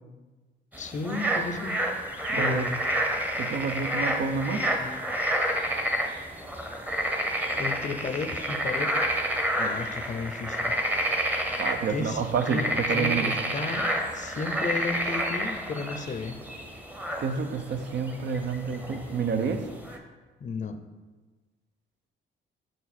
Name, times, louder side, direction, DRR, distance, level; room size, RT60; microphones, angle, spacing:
sound 1, 0.7-20.0, right 1 dB, 5° right, 0.8 m, -29 dB
voice 1, 0.8-1.8 2.3-2.8 4.5-5.0 7.6-8.9 9.6-10.8 11.5-16.4 20.4-20.8, left 4 dB, 40° left, 8 dB, 0.6 m, -34 dB
voice 2, 2.3-2.7 3.4-4.7 11.6-12.6 12.9-13.5 17.2-19.7, right 5 dB, 60° right, 8 dB, 0.6 m, -29 dB
6.1 x 4.7 x 4.2 m, 1.3 s
cardioid pair, 90°, 20 cm